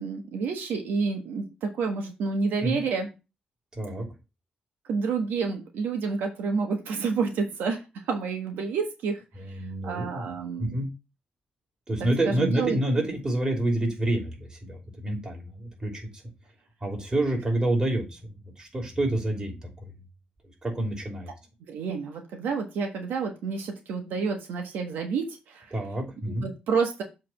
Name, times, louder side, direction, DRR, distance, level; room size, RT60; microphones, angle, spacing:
voice 1, 0.0-3.1 4.9-9.2 9.5-10.8 12.0-12.8 21.7-25.7 26.3-27.0, right 5 dB, 85° right, 4 dB, 1.3 m, -29 dB
voice 2, 3.7-4.1 9.4-10.3 10.6-10.9 11.9-16.1 16.8-19.9 20.6-21.3 25.7-26.5, right 1 dB, 25° right, 1 dB, 3.1 m, -28 dB
7.5 x 3.4 x 5.7 m, 0.28 s
cardioid pair, 90°, 3 cm